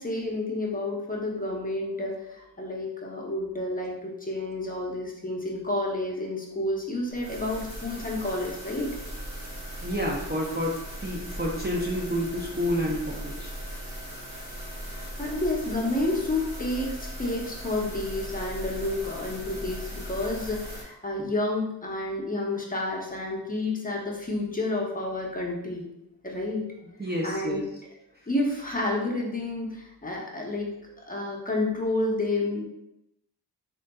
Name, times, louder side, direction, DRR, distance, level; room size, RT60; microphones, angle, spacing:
voice 1, 0.0-8.9 14.9-25.8 26.2-26.7 27.2-27.7 28.3-30.7 31.1-32.6, left 2 dB, 20° left, -2 dB, 0.7 m, -30 dB
sound 1, 7.1-20.8, equal, 40° right, 1.2 m, -38 dB
voice 2, 9.8-13.5 21.2-21.3 27.0-27.6, equal, 25° right, -2 dB, 0.5 m, -29 dB
3.9 x 3.7 x 2.2 m, 0.85 s
wide cardioid pair, 110°, 42 cm